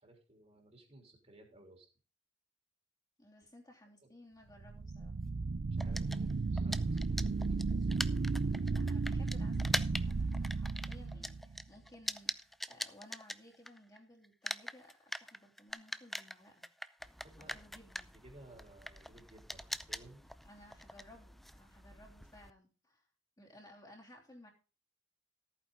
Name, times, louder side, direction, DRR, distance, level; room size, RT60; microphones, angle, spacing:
voice 1, 0.0-1.9 4.0-4.1 5.7-8.8 17.2-17.6 18.2-20.2, right 1 dB, 35° right, 1 dB, 3.5 m, -59 dB
voice 2, 3.2-5.3 8.7-16.6 17.4-18.1 20.4-23.0 23.4-24.5, left 1 dB, 20° left, -3 dB, 3.2 m, -58 dB
sound 1, 4.6-11.6, right 3 dB, 55° right, 0.5 m, -34 dB
sound 2, 5.8-14.0 14.2-22.5, equal, ahead, 0.5 m, -42 dB
14.5 x 8.9 x 3.9 m, 0.35 s
head